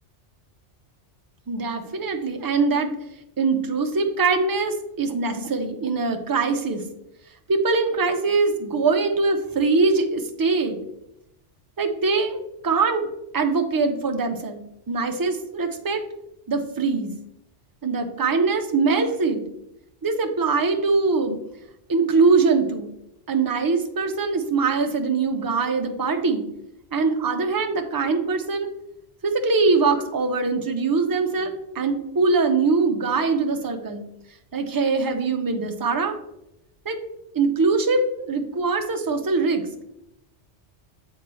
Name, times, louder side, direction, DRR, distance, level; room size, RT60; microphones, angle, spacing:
voice 1, 1.5-2.9 3.4-6.8 7.5-10.8 11.8-13.1 13.3-14.6 14.9-16.0 16.5-17.1 17.8-19.4 20.0-21.4 21.9-22.9 23.3-26.4 26.9-28.7 29.2-34.0 34.5-36.1 36.8-37.0 37.3-39.6, right 4 dB, 30° right, 5 dB, 0.4 m, -22 dB
7.4 x 4.4 x 3.1 m, 0.83 s
omnidirectional pair, 1.2 m